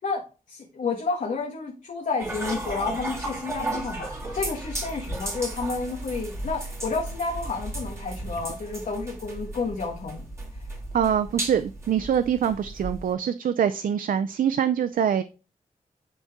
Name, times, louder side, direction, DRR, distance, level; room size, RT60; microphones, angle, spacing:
voice 1, 0.0-10.3 10.5-10.6, left 4 dB, 70° left, -1 dB, 1.5 m, -31 dB
sound 1, 2.2-13.1, right 2 dB, 20° right, 3.6 m, -34 dB
voice 2, 10.9-15.2, right 8 dB, 85° right, 12 dB, 0.4 m, -24 dB
10.5 x 4.1 x 3.6 m, 0.32 s
wide cardioid pair, 85°, 14 cm